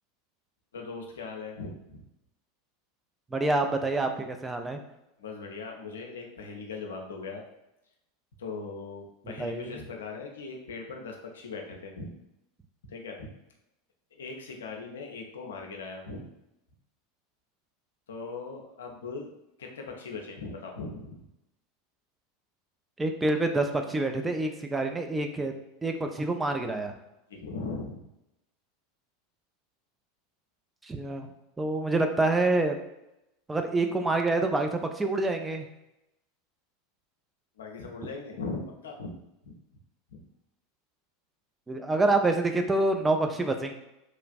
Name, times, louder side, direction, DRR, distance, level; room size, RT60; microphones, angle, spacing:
voice 1, 0.7-2.0 5.2-7.4 8.4-12.1 12.9-13.3 14.1-16.2 18.1-19.3 19.6-21.2 27.3-28.0 37.6-39.2 39.4-39.5 40.1-40.2, left 4 dB, 75° left, 2 dB, 0.4 m, -39 dB
voice 2, 3.3-4.8 9.4-9.7 23.0-25.5 25.8-26.9 30.9-31.3 31.6-32.8 33.5-35.7 41.7-43.7, right 2 dB, 15° right, 5 dB, 0.3 m, -27 dB
3.0 x 2.4 x 2.3 m, 0.89 s
figure-of-eight pair, 85°, 0 cm